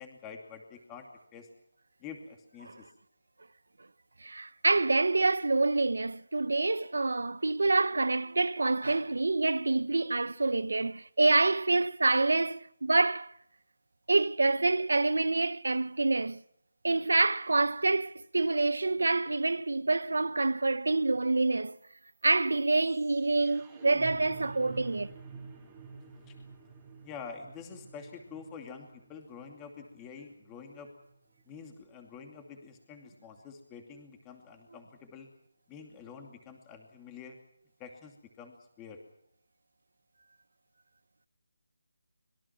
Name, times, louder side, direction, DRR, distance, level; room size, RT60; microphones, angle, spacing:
voice 1, 0.0-1.5 2.0-2.9 26.3-26.4 27.0-30.9 31.5-35.3 35.7-37.4 37.8-39.0, left 6 dB, 10° left, 2.5 m, -47 dB
voice 2, 4.2-13.3 14.1-16.4 16.8-21.8 22.2-25.1, right 3 dB, 85° right, 1.0 m, -27 dB
sound 1, 21.7-31.7, right 4 dB, 10° right, 3.2 m, -49 dB
25.5 x 22.0 x 6.0 m
hypercardioid pair, 175°, 0 cm